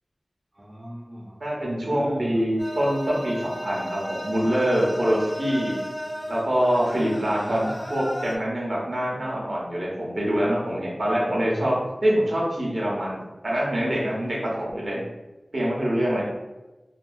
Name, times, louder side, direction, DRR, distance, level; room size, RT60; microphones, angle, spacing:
voice 1, 0.5-2.5 5.6-5.7 6.2-6.3 7.3-7.8 11.2-11.8 14.6-15.1, equal, 30° right, -4 dB, 0.4 m, -38 dB
voice 2, 1.4-5.8 6.3-7.6 7.9-13.2 13.4-15.0 15.5-16.2, equal, 70° right, -5 dB, 0.9 m, -25 dB
sound 1, 2.6-8.4, equal, 30° left, 0.4 m, -34 dB
2.7 x 2.4 x 2.6 m, 1.1 s
wide cardioid pair, 65°, 0 cm